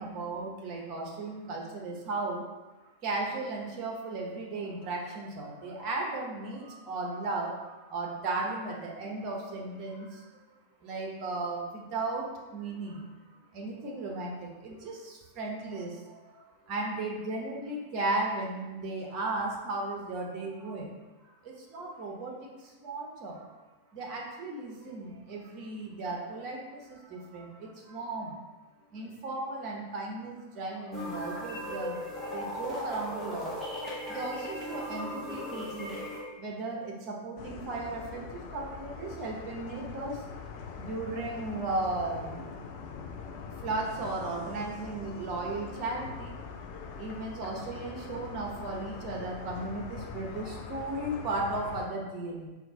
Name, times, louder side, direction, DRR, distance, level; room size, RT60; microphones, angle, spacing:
voice 1, 0.0-2.4 3.0-10.2 10.8-13.0 13.5-20.9 21.4-23.5 23.9-28.4 28.9-33.8 34.1-40.2 40.8-42.4 43.6-46.3 47.0-52.5, right 2 dB, 40° right, -1 dB, 0.9 m, -36 dB
sound 1, 30.9-36.2, left 1 dB, 15° left, 1.1 m, -37 dB
sound 2, 37.4-51.9, left 5 dB, 45° left, 0.5 m, -43 dB
4.3 x 2.5 x 3.9 m, 1.1 s
figure-of-eight pair, 90°, 0 cm